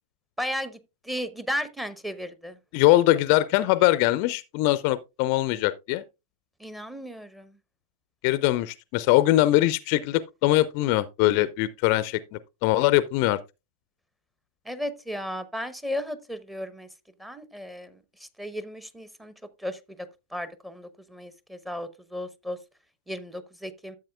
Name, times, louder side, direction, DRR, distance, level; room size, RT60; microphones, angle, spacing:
voice 1, 0.4-0.8 1.0-2.6 6.6-7.6 14.6-16.9 17.2-19.3 19.6-19.8 20.3-22.6 23.1-24.0, equal, 5° right, 0.9 m, -34 dB
voice 2, 2.7-6.0 8.2-13.4, left 16 dB, 45° left, 0.5 m, -22 dB
13.0 x 7.6 x 2.3 m
figure-of-eight pair, 90°, 0 cm